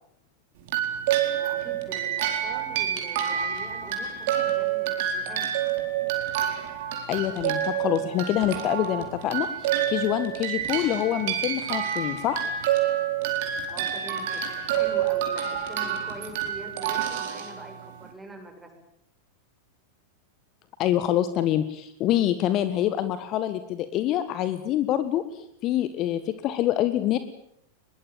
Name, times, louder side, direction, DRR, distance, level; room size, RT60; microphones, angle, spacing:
sound 1, 0.7-18.1, right 10 dB, 50° right, 4.3 m, -28 dB
voice 1, 1.4-5.5 13.7-18.7, right 1 dB, 10° right, 3 dB, 7.4 m, -44 dB
voice 2, 7.1-12.4 20.8-27.2, left 12 dB, 35° left, 12 dB, 1.6 m, -26 dB
23.0 x 22.0 x 9.0 m, 0.73 s
figure-of-eight pair, 90°, 0 cm